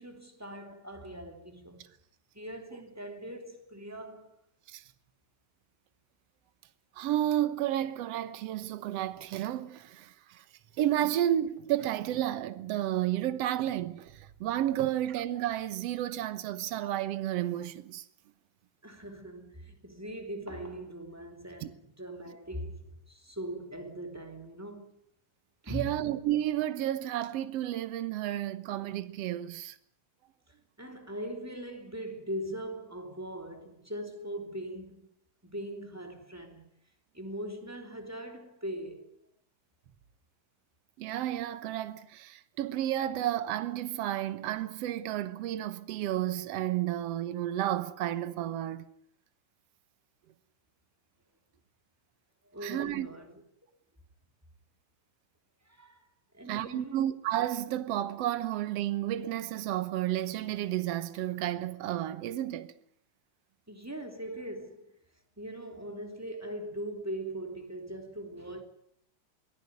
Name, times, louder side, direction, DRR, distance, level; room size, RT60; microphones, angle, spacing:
voice 1, 0.0-1.9 2.3-4.4 18.8-24.9 25.6-26.1 30.5-35.1 35.4-36.7 37.1-39.2 52.4-53.4 55.6-56.0 56.3-57.0 63.7-64.9 65.4-68.6, right 1 dB, 5° right, 2.9 m, -41 dB
voice 2, 7.0-10.4 10.8-18.1 21.6-21.7 25.7-29.8 41.0-48.9 52.6-53.1 56.5-62.7, right 12 dB, 65° right, 2.0 m, -31 dB
23.0 x 15.5 x 9.6 m
omnidirectional pair, 3.3 m